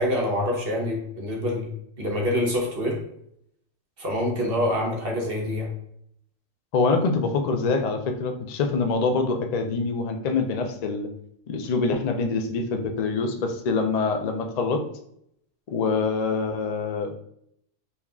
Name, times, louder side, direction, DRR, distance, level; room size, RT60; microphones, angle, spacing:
voice 1, 0.0-1.7 2.0-3.0 4.0-5.7, left 1 dB, 50° right, -1 dB, 1.0 m, -26 dB
voice 2, 6.7-11.1 11.5-14.8 15.7-17.1, left 4 dB, 85° left, 4 dB, 0.3 m, -25 dB
4.2 x 2.3 x 3.5 m, 0.72 s
omnidirectional pair, 1.3 m